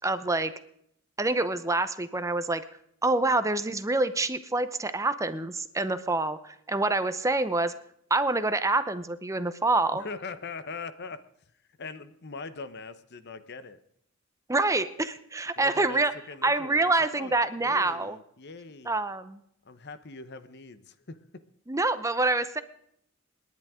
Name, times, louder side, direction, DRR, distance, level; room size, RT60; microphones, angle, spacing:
voice 1, 0.0-0.5 1.2-2.6 3.0-7.7 8.1-10.0 14.5-16.1 16.4-18.2 18.9-19.4 21.7-22.6, right 2 dB, 15° right, 12 dB, 0.7 m, -26 dB
voice 2, 10.0-11.2 11.8-13.8 15.6-17.3 17.6-18.9 19.6-21.2, left 4 dB, 55° left, 12 dB, 1.0 m, -41 dB
28.5 x 10.5 x 3.7 m, 0.72 s
head